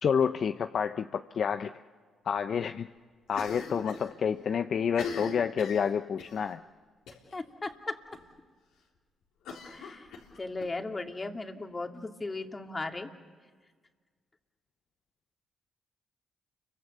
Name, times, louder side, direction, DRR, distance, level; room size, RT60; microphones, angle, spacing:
voice 1, 0.0-1.7 2.2-2.9 3.3-6.6, left 7 dB, 60° left, 9 dB, 0.7 m, -29 dB
Cough, 3.3-4.1 4.4-4.5 4.9-6.4 7.1-7.4 7.7-7.8 8.1-8.2 9.4-10.7, left 5 dB, 80° left, 3.8 m, -41 dB
voice 2, 7.3-8.0 9.6-10.1 10.4-13.1, left 2 dB, 30° left, 4 dB, 2.6 m, -37 dB
30.0 x 24.0 x 6.9 m, 1.5 s
supercardioid pair, 60°, 0 cm